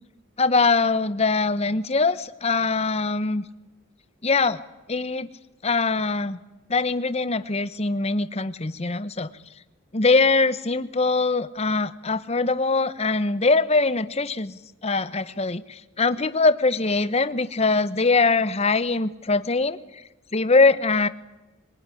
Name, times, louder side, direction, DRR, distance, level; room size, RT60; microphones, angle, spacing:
voice 1, 0.4-3.4 4.2-4.6 4.9-5.3 5.6-6.4 6.7-9.3 9.9-19.8 20.3-21.1, left 3 dB, 30° left, 14 dB, 0.9 m, -22 dB
23.0 x 20.0 x 9.9 m, 1.0 s
head